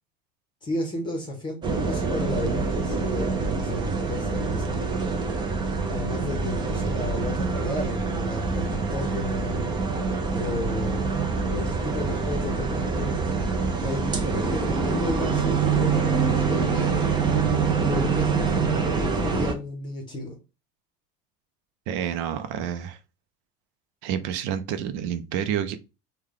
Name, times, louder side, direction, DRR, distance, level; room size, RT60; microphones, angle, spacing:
voice 1, 0.6-5.0 5.9-9.7 10.3-11.2 11.4-13.2 13.8-17.1 17.8-20.4, left 2 dB, 20° left, 0.8 m, -33 dB
sound 1, 1.6-19.5, right 5 dB, 20° right, 0.6 m, -25 dB
voice 2, 21.9-23.0 24.0-25.8, right 9 dB, 60° right, 0.6 m, -29 dB
3.3 x 2.3 x 3.7 m
cardioid pair, 160°, 21 cm